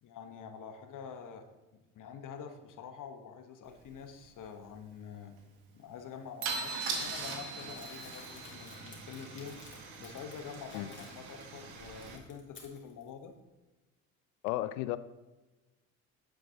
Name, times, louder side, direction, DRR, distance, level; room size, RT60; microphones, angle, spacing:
voice 1, 0.0-5.4 5.7-9.6 10.0-13.3, left 7 dB, 45° left, 7 dB, 1.1 m, -47 dB
Car / Engine starting / Idling, 3.8-3.9 4.2-4.4 6.4-12.2, right 4 dB, 60° right, 1.6 m, -42 dB
sound 1, 6.4-9.0, right 3 dB, 40° right, 1.2 m, -42 dB
Crumpling crinkling, 7.6-11.4 11.8-13.1, left 3 dB, 25° left, 2.3 m, -55 dB
voice 2, 14.4-15.0, left 16 dB, 75° left, 15 dB, 0.5 m, -33 dB
9.0 x 7.3 x 2.8 m, 1.1 s
hypercardioid pair, 65°, 43 cm